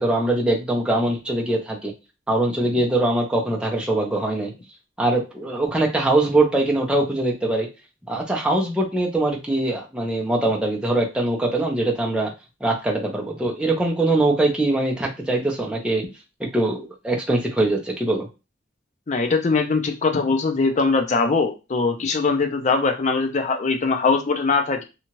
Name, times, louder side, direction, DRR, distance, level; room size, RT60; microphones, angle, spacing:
voice 1, 0.0-1.9 2.3-4.5 5.0-7.7 8.1-12.3 12.6-16.0 16.4-18.3, right 2 dB, 5° right, -2 dB, 0.6 m, -22 dB
voice 2, 19.1-24.8, left 4 dB, 40° left, 6 dB, 0.5 m, -21 dB
2.8 x 2.3 x 2.9 m, 0.28 s
head